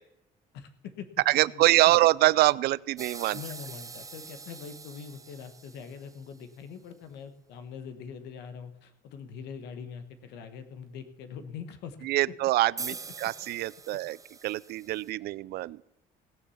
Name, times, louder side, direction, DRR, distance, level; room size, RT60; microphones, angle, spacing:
voice 1, 0.5-1.1 1.3-2.0 3.0-12.0, left 6 dB, 85° left, 10 dB, 1.2 m, -43 dB
voice 2, 1.3-3.4 12.0-14.2 14.4-15.8, right 17 dB, 70° right, 22 dB, 0.4 m, -25 dB
sound 1, 3.0-6.4 12.8-15.1, right 4 dB, 20° right, 0.7 m, -44 dB
17.0 x 7.1 x 7.1 m, 0.87 s
cardioid pair, 110°, 17 cm